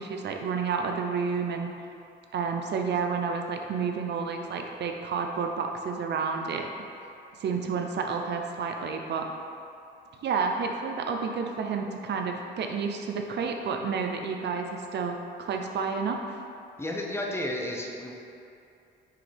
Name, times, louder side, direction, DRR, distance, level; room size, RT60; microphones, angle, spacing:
voice 1, 0.0-1.7 2.3-6.7 7.4-9.3 10.2-16.4, right 5 dB, 60° right, 3 dB, 0.6 m, -30 dB
voice 2, 16.8-18.1, left 1 dB, 10° left, -1 dB, 0.8 m, -32 dB
9.4 x 3.5 x 3.4 m, 2.6 s
cardioid pair, 90°, 20 cm